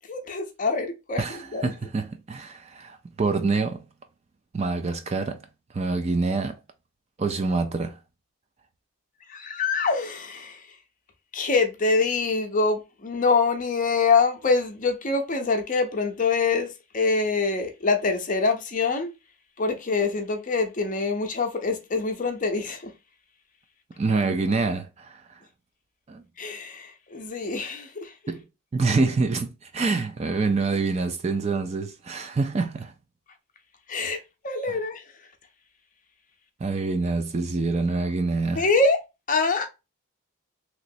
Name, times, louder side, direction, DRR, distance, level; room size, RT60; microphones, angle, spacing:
voice 1, 0.1-1.2 1.5-1.7 9.3-10.6 11.3-19.1 19.6-22.9 26.4-28.1 33.9-35.0 38.6-39.0 39.3-39.7, left 4 dB, 35° left, 0.6 m, -25 dB
voice 2, 1.2-3.9 4.5-5.5 5.7-6.6 7.2-8.0 24.0-25.4 26.1-26.2 28.3-28.4 28.7-32.9 34.7-34.8 36.6-38.7, right 3 dB, 30° right, 0.3 m, -26 dB
3.0 x 3.0 x 2.6 m
head